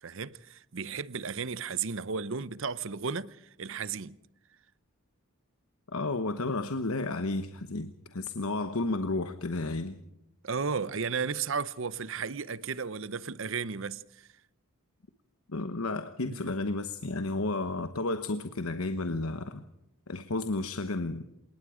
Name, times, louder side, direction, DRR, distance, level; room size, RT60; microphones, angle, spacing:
voice 1, 0.0-4.2 10.4-14.3 16.3-16.5, right 5 dB, 60° right, 0.7 m, -34 dB
voice 2, 5.9-10.0 15.5-19.6 20.1-21.2, left 2 dB, 70° left, 1.1 m, -32 dB
27.5 x 19.5 x 5.0 m
head